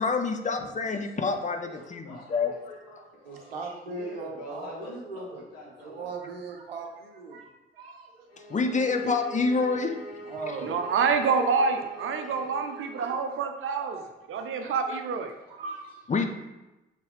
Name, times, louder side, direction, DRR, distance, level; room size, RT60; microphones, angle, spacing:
voice 1, 0.0-2.5 8.5-9.9 16.1-16.3, left 4 dB, 25° left, 6 dB, 0.6 m, -27 dB
voice 2, 1.4-3.5 3.9-6.1, left 2 dB, 60° left, -3 dB, 1.9 m, -43 dB
voice 3, 3.2-5.5 5.8-8.5 10.2-10.9 12.0-12.1 12.7-13.4 13.9-14.1 14.3-14.7 15.5-15.9 16.2-16.3, right 4 dB, 80° right, 3 dB, 0.7 m, -40 dB
sound 1, 8.3-13.2, equal, 90° left, 0.6 m, -44 dB
voice 4, 10.6-14.0 14.3-15.3, right 5 dB, 45° right, 6 dB, 0.7 m, -27 dB
6.9 x 4.5 x 3.4 m, 1.0 s
figure-of-eight pair, 40°, 29 cm